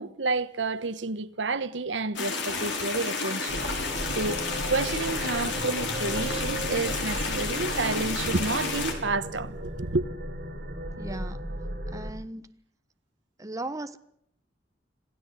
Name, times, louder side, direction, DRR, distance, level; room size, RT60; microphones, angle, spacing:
voice 1, 0.0-10.0, right 3 dB, 80° right, 1.2 m, -30 dB
sound 1, 2.2-8.9, left 4 dB, 70° left, 5.6 m, -31 dB
sound 2, 3.5-12.1, right 1 dB, 55° right, 5.3 m, -35 dB
voice 2, 11.0-11.4 11.9-12.5 13.4-14.0, right 2 dB, 20° right, 1.2 m, -37 dB
27.0 x 16.0 x 8.3 m
head